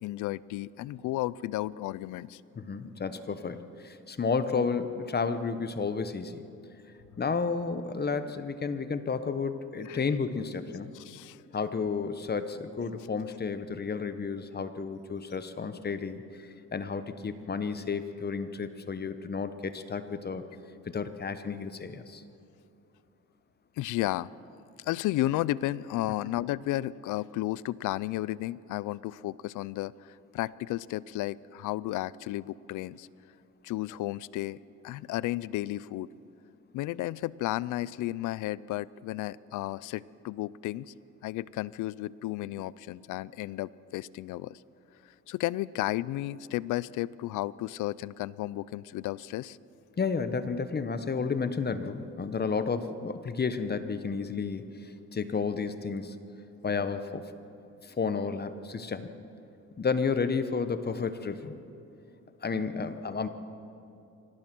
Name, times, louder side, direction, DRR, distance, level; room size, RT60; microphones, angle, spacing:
voice 1, 0.0-2.4 9.9-10.0 10.9-11.4 23.8-24.3 24.8-33.1 33.6-34.6 34.8-36.1 36.7-40.9 41.2-44.6 45.3-49.6, left 16 dB, 85° left, 21 dB, 0.5 m, -33 dB
voice 2, 2.6-6.4 7.2-10.9 11.5-20.4 20.9-22.2 50.0-56.1 56.6-57.2 57.8-59.1 59.8-61.6 62.4-63.3, left 5 dB, 35° left, 11 dB, 1.2 m, -32 dB
24.5 x 18.0 x 6.1 m, 2.7 s
cardioid pair, 90°, 30 cm